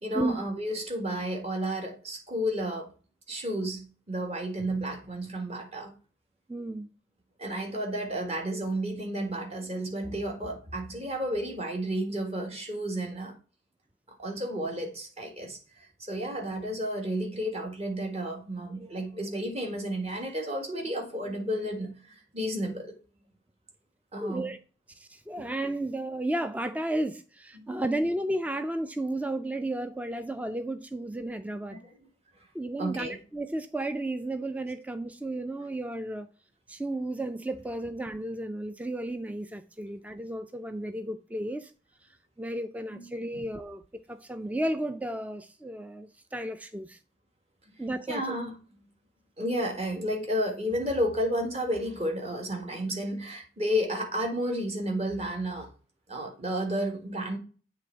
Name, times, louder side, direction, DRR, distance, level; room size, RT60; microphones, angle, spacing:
voice 1, 0.0-2.9 3.3-5.9 7.4-13.3 14.2-22.9 24.1-24.5 25.4-25.5 27.5-27.8 31.7-31.8 32.8-33.2 42.9-43.4 48.1-48.5 49.4-55.7 56.1-57.4, equal, 35° right, 1.6 m, -32 dB
voice 2, 6.5-6.9 24.2-24.6 25.0-31.8 32.5-36.3 36.7-41.7 42.4-43.8 44.1-47.0 47.8-48.3, right 1 dB, 10° right, 0.3 m, -33 dB
7.8 x 3.5 x 4.4 m
head